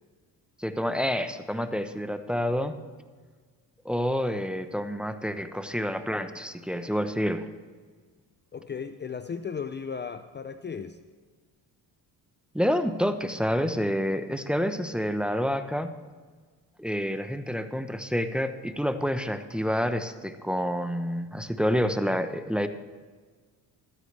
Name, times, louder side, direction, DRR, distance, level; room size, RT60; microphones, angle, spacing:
voice 1, 0.6-2.8 3.8-7.5 12.5-15.9 16.8-22.7, equal, ahead, 8 dB, 0.8 m, -28 dB
voice 2, 8.5-11.0, left 6 dB, 30° left, 10 dB, 0.6 m, -35 dB
14.5 x 13.0 x 3.3 m, 1.5 s
cardioid pair, 80°, 39 cm